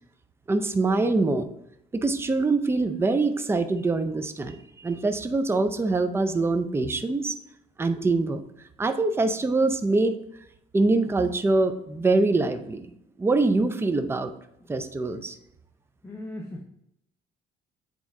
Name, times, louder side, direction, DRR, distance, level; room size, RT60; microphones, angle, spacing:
voice 1, 0.5-1.5 1.9-7.3 7.8-8.4 8.8-10.2 10.7-12.9 13.2-14.3 14.7-15.4, right 3 dB, 15° right, 8 dB, 0.5 m, -24 dB
voice 2, 16.0-16.6, left 1 dB, 15° left, 1 dB, 0.8 m, -37 dB
8.3 x 3.7 x 3.6 m, 0.79 s
cardioid pair, 110°, 17 cm